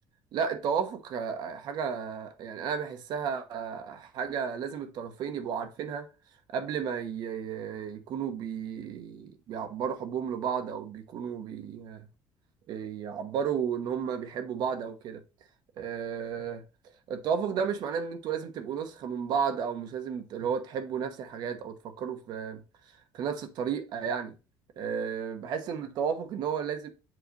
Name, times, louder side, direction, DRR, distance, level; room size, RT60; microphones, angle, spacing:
voice 1, 0.3-6.1 6.5-12.1 12.7-15.2 15.8-16.6 17.1-22.6 23.1-24.3 24.8-26.9, right 7 dB, 55° right, 1.0 m, -33 dB
7.7 x 3.3 x 3.9 m
cardioid pair, 155°, 8 cm